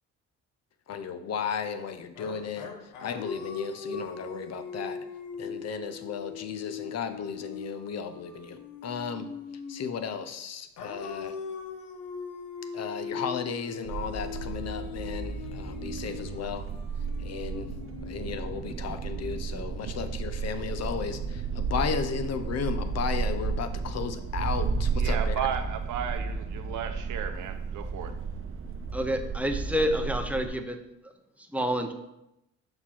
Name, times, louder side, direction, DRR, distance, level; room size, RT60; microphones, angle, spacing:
voice 1, 0.9-2.7 3.0-5.0 5.4-9.3 9.7-11.4 12.7-16.7 17.2-17.7 18.0-25.4, left 6 dB, 55° left, 9 dB, 0.7 m, -34 dB
sound 1, 2.2-10.2 10.8-18.8, left 5 dB, 85° left, 1.0 m, -40 dB
sound 2, 13.9-30.5, right 5 dB, 45° right, 0.8 m, -33 dB
voice 2, 25.0-28.2, right 9 dB, 80° right, 7 dB, 0.7 m, -34 dB
voice 3, 28.9-30.8 31.0-31.1 31.4-31.9, equal, 5° right, 6 dB, 0.7 m, -28 dB
6.6 x 4.3 x 4.4 m, 0.87 s
cardioid pair, 90°, 30 cm